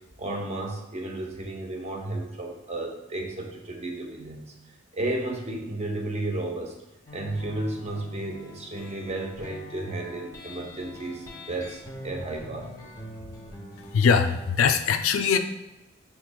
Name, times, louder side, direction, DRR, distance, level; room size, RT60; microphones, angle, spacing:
voice 1, 0.2-4.5 4.9-6.7 7.1-12.7, right 2 dB, 35° right, 2 dB, 0.6 m, -33 dB
sound 1, 7.1-14.5, left 1 dB, 20° left, 0.7 m, -44 dB
voice 2, 13.9-15.4, left 6 dB, 85° left, 7 dB, 0.4 m, -21 dB
5.7 x 3.0 x 2.2 m, 0.98 s
head